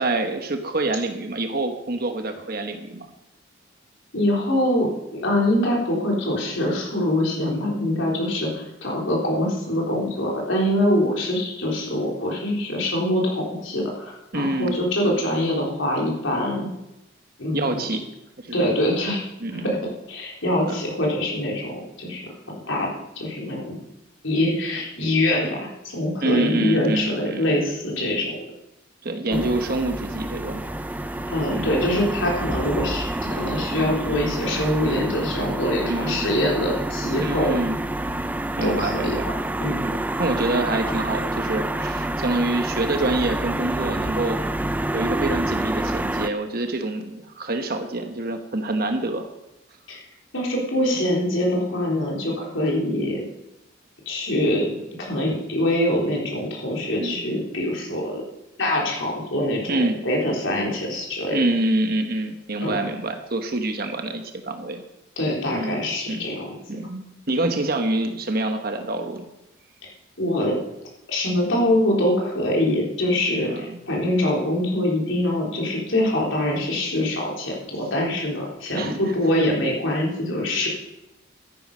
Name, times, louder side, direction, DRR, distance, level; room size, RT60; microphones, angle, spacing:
voice 1, 0.0-3.1 14.3-14.8 17.5-18.1 18.4-18.8 19.4-19.8 20.7-20.8 26.2-27.6 29.0-30.6 31.5-31.7 33.8-34.0 35.8-36.3 37.2-37.8 38.6-39.3 39.8-44.4 44.9-49.3 51.0-51.1 57.0-57.2 59.7-60.0 61.3-64.8 65.5-65.8 66.1-66.3 66.7-69.3 73.4-73.8 78.7-79.1, right 2 dB, 50° right, 6 dB, 1.1 m, -26 dB
voice 2, 4.1-16.7 17.4-17.8 18.5-19.2 19.5-19.8 20.1-22.2 22.7-22.9 23.2-23.8 24.2-28.4 29.3-29.5 31.3-37.5 38.6-39.3 39.6-39.8 49.9-50.0 50.3-53.2 54.1-58.2 58.6-61.4 62.6-62.8 65.2-66.6 70.2-70.6 71.1-80.7, left 1 dB, 75° left, -2 dB, 3.8 m, -24 dB
sound 1, 29.3-46.3, right 1 dB, 10° right, 0.4 m, -28 dB
12.5 x 10.0 x 5.5 m, 0.91 s
head